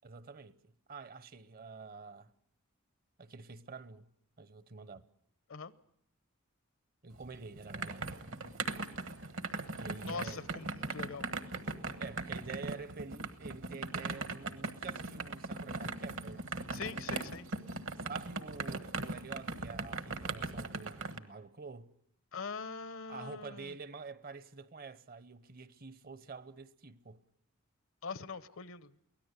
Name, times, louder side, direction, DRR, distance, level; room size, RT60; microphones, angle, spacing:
voice 1, 0.0-0.6 0.9-2.3 3.2-4.1 4.4-5.0 7.0-8.2 9.7-10.6 12.0-16.5 18.0-21.9 23.1-27.2, right 4 dB, 45° right, 0.8 m, -48 dB
sound 1, 7.2-21.2, right 3 dB, 65° right, 1.3 m, -39 dB
voice 2, 10.0-11.3 16.7-17.5 22.3-23.7 28.0-28.9, left 5 dB, 75° left, 0.9 m, -42 dB
23.5 x 17.5 x 8.1 m
head